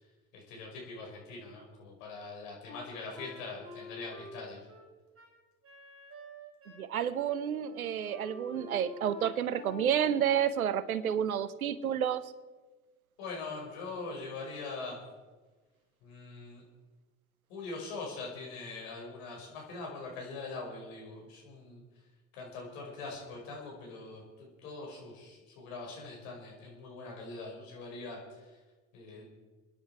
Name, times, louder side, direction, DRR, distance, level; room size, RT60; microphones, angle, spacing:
voice 1, 0.3-4.6 13.2-15.0 16.0-16.6 17.5-21.8 22.3-28.6 28.9-29.2, left 3 dB, 65° left, -1 dB, 5.2 m, -42 dB
Wind instrument woodwind instrument, 2.7-6.9 7.2-7.4 7.6-10.0, left 2 dB, 30° right, 4.2 m, -49 dB
voice 2, 6.8-12.2, right 9 dB, 80° right, 16 dB, 0.9 m, -30 dB
26.0 x 10.5 x 4.6 m, 1.3 s
figure-of-eight pair, 65°, 42 cm